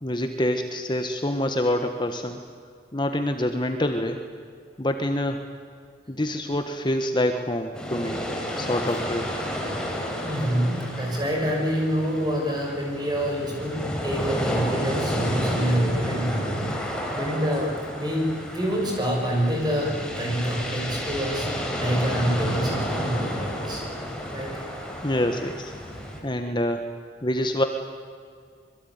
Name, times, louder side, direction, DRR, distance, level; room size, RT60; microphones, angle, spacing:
voice 1, 0.0-2.4 2.9-4.2 4.8-5.4 6.1-8.2 8.6-9.3 25.0-25.7 26.2-26.8 27.2-27.6, left 1 dB, 25° left, 6 dB, 1.3 m, -26 dB
sound 1, 7.8-26.2, equal, 5° left, 4.0 m, -31 dB
voice 2, 10.2-16.8 17.1-21.5 21.8-23.8 24.3-24.6, equal, 25° right, 0 dB, 6.7 m, -27 dB
26.0 x 22.0 x 9.5 m, 2.2 s
head